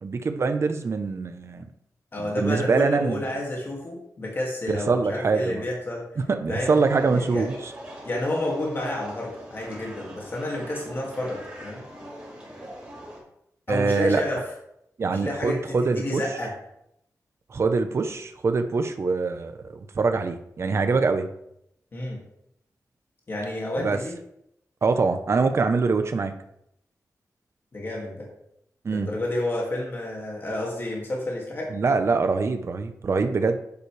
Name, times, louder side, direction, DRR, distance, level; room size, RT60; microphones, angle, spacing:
voice 1, 0.0-1.6 2.2-3.2 4.7-5.6 6.2-7.7 13.7-14.2 15.0-16.2 17.5-21.3 23.8-24.0 24.8-26.3 28.8-29.1 31.7-33.6, right 4 dB, 45° right, 7 dB, 0.8 m, -24 dB
voice 2, 2.1-6.0 6.5-6.8 7.1-7.5 8.0-11.8 13.7-14.4 15.0-16.5 21.9-22.2 23.3-24.1 27.7-28.3 28.9-31.7, left 1 dB, 35° left, -3 dB, 2.3 m, -30 dB
sound 1, 6.6-13.2, equal, 15° right, 4.3 m, -42 dB
11.0 x 9.5 x 3.3 m, 0.78 s
wide cardioid pair, 180°, 6 cm